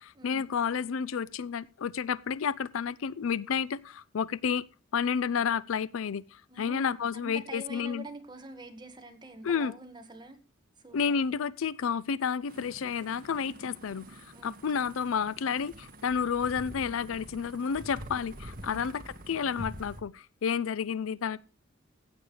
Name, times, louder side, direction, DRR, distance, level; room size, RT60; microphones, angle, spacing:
voice 1, 0.0-4.6 4.9-8.1 9.4-9.7 10.9-21.4, left 6 dB, 75° left, 0.4 m, -31 dB
voice 2, 6.5-10.4 10.8-11.0 14.3-14.6 18.6-18.8, right 2 dB, 20° right, 1.8 m, -45 dB
sound 1, 12.5-20.0, right 1 dB, 45° right, 2.0 m, -46 dB
15.5 x 8.4 x 3.3 m
head